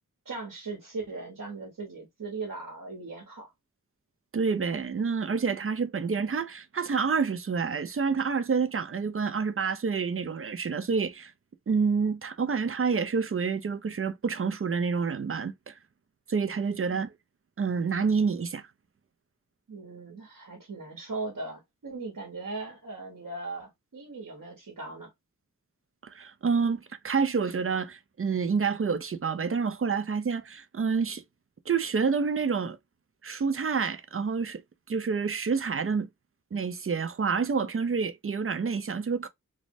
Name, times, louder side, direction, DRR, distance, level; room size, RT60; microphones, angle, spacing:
voice 1, 0.2-3.5 19.7-25.1, right 3 dB, 80° right, 1.0 m, -39 dB
voice 2, 4.3-11.3 11.7-15.7 16.3-17.1 17.6-18.6 26.0-31.2 31.7-32.8 33.2-34.6 34.9-36.1 36.5-39.3, right 5 dB, 45° right, 0.4 m, -28 dB
3.1 x 2.1 x 2.6 m
wide cardioid pair, 65°, 32 cm